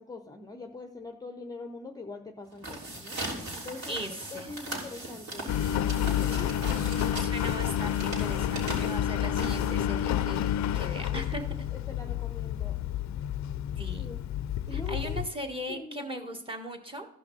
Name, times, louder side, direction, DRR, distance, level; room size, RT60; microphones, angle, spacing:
voice 1, 0.0-3.2 3.5-4.0 4.3-5.6 5.8-7.3 11.1-12.8 13.9-14.2 14.7-15.2 15.7-16.4, left 3 dB, 10° left, 5 dB, 0.7 m, -43 dB
sound 1, 2.5-10.0, right 1 dB, 60° right, 3.2 m, -39 dB
voice 2, 3.9-4.5 6.4-6.5 7.2-11.5 13.8-14.1 14.7-17.1, equal, 15° right, 5 dB, 1.6 m, -38 dB
Engine, 5.5-15.3, left 10 dB, 65° left, 0.5 m, -29 dB
14.0 x 5.8 x 4.0 m, 0.84 s
cardioid pair, 90°, 30 cm